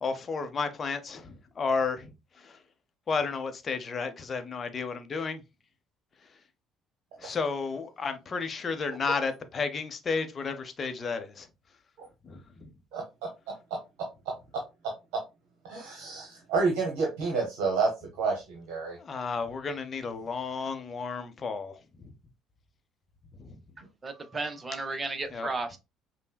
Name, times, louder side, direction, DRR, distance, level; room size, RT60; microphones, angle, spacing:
voice 1, 0.0-2.1 3.1-5.4 7.2-11.5 12.3-12.4 19.1-21.7 25.3-25.5, left 4 dB, 35° left, 0.6 m, -32 dB
voice 2, 15.7-17.9 18.2-19.0, right 4 dB, 65° right, 0.8 m, -29 dB
voice 3, 24.0-25.8, right 3 dB, 25° right, 0.7 m, -34 dB
5.3 x 2.0 x 2.2 m
figure-of-eight pair, 55°, 0 cm